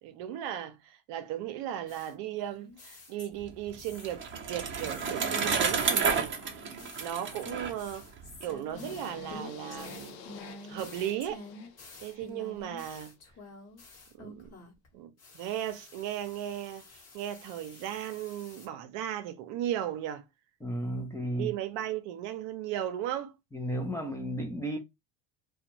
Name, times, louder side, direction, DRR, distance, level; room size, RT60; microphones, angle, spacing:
voice 1, 0.0-6.7 7.0-8.1 8.4-10.2 10.7-11.4 12.0-13.1 14.1-14.6 14.9-20.2 21.3-23.3, right 11 dB, 60° right, 0.7 m, -36 dB
sound 1, 1.9-3.5 3.8-4.3 4.8-14.9 15.2-18.7, left 2 dB, 30° left, 1.1 m, -50 dB
Bicycle, 3.4-8.5, right 5 dB, 25° right, 0.7 m, -31 dB
sound 2, 8.7-12.8, left 6 dB, 90° left, 0.8 m, -48 dB
voice 2, 20.6-21.5 23.5-24.8, right 1 dB, 5° left, 0.4 m, -33 dB
2.5 x 2.3 x 2.9 m
supercardioid pair, 105°, 48 cm